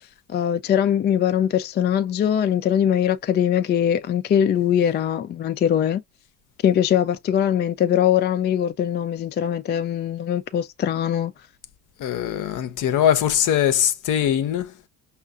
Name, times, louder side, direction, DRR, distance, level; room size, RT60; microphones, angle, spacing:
voice 1, 0.3-6.0 6.6-11.3, left 9 dB, 30° left, 0.3 m, -21 dB
voice 2, 12.0-14.7, left 10 dB, 55° left, 0.7 m, -21 dB
5.4 x 2.3 x 2.3 m
supercardioid pair, 70°, 38 cm